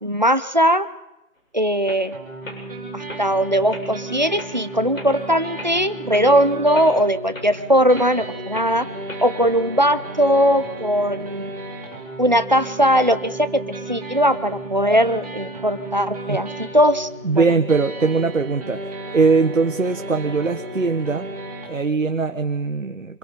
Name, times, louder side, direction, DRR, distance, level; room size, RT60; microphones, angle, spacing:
voice 1, 0.0-0.9 1.5-2.1 2.9-8.9 9.2-11.5 12.2-17.4, equal, 30° right, 11 dB, 0.8 m, -19 dB
sound 1, 1.4-1.5 1.8-2.0 2.4-2.6 3.1-3.2 3.7-3.9 4.3-4.5 4.9-5.2 5.6-5.7 6.1-6.3 6.7-6.9 7.3-7.5 7.9-8.1 8.5-8.7 9.1-9.3, left 2 dB, 65° left, 7.8 m, -36 dB
sound 2, 2.1-21.7, right 2 dB, 10° right, 4.6 m, -34 dB
voice 2, 17.2-18.8 19.1-21.3 21.7-23.2, right 4 dB, 60° right, 7 dB, 1.3 m, -21 dB
27.0 x 22.5 x 5.2 m, 0.91 s
figure-of-eight pair, 180°, 42 cm